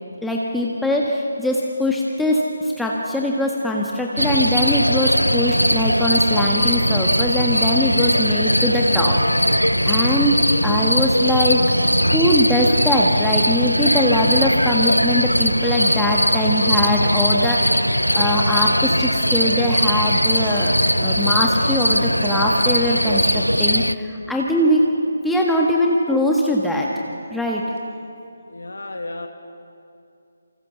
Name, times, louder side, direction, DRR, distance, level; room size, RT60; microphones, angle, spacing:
voice 1, 0.2-11.6 12.1-20.7 21.0-24.9 25.2-26.9 27.3-27.6, left 1 dB, ahead, -2 dB, 1.6 m, -21 dB
sound 1, 4.2-23.9, equal, 90° left, 0.8 m, -19 dB
voice 2, 28.5-29.3, left 2 dB, 65° left, 4 dB, 2.1 m, -32 dB
28.0 x 26.0 x 7.1 m, 2.6 s
figure-of-eight pair, 145°, 0 cm